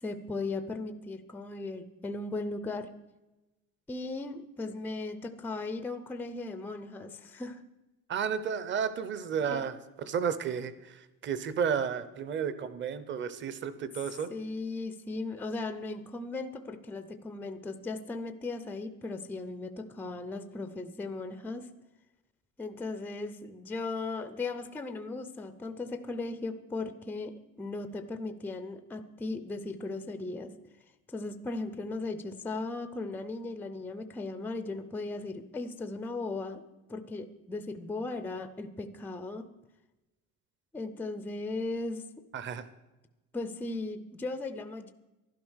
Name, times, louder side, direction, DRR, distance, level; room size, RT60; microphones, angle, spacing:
voice 1, 0.0-2.9 3.9-7.6 9.5-9.6 14.3-21.7 22.6-30.5 31.1-36.6 36.9-39.5 40.7-42.0 43.3-44.9, left 3 dB, 5° left, 10 dB, 0.4 m, -37 dB
voice 2, 8.1-9.7 10.0-14.3 42.3-42.6, right 7 dB, 35° right, 15 dB, 0.7 m, -32 dB
12.0 x 11.5 x 6.3 m, 1.0 s
cardioid pair, 180°, 35 cm